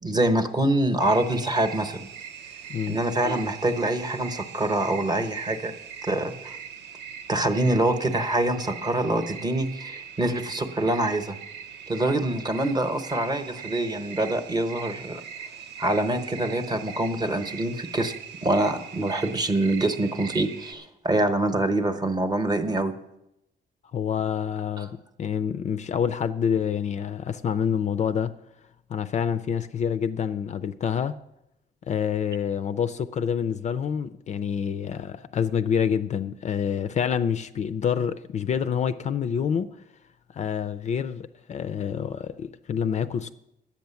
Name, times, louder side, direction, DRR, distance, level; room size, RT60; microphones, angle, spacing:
voice 1, 0.0-2.0 2.9-5.7 6.0-6.6 7.3-11.4 11.9-15.2 15.8-18.1 18.4-22.9 24.8-24.9, right 1 dB, 25° right, 0.9 m, -25 dB
sound 1, 1.0-20.7, right 7 dB, 85° right, 0.8 m, -41 dB
voice 2, 23.9-28.4 28.9-31.2 31.9-39.7 40.3-43.3, left 7 dB, 40° left, 0.4 m, -27 dB
10.5 x 8.3 x 6.9 m
cardioid pair, 155°, 17 cm